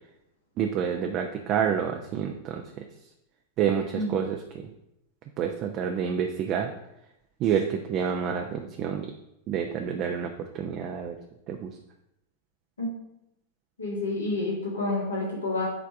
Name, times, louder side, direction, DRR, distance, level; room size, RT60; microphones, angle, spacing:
voice 1, 0.6-2.8 3.6-4.7 5.4-6.7 7.4-9.1 9.5-11.2 11.5-11.8, right 8 dB, 35° right, 3 dB, 0.5 m, -28 dB
voice 2, 13.8-15.6, left 2 dB, 75° left, -4 dB, 1.9 m, -29 dB
7.1 x 3.5 x 4.6 m, 0.86 s
figure-of-eight pair, 90°, 0 cm